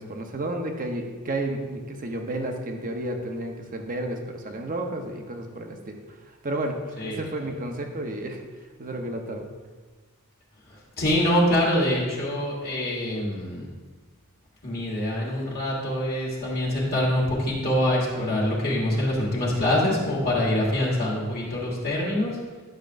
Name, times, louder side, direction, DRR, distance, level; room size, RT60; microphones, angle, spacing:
voice 1, 0.0-6.0 6.4-8.4 8.8-9.5, right 1 dB, 40° right, 3 dB, 0.8 m, -31 dB
voice 2, 7.0-7.5 10.7-13.7 14.6-22.4, left 1 dB, 45° left, -4 dB, 1.4 m, -25 dB
10.5 x 6.5 x 2.5 m, 1.4 s
head